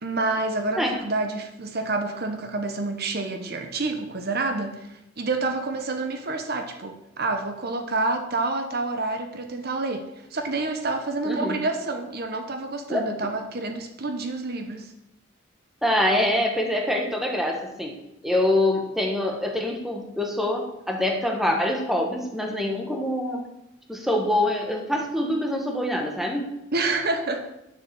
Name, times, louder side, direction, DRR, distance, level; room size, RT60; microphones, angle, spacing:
voice 1, 0.0-14.9 26.7-27.5, right 3 dB, 50° right, 6 dB, 1.0 m, -28 dB
voice 2, 11.2-11.6 12.9-13.0 15.8-18.0 18.2-23.4 23.9-26.6, left 1 dB, ahead, 2 dB, 1.5 m, -25 dB
10.0 x 7.3 x 7.0 m, 0.87 s
head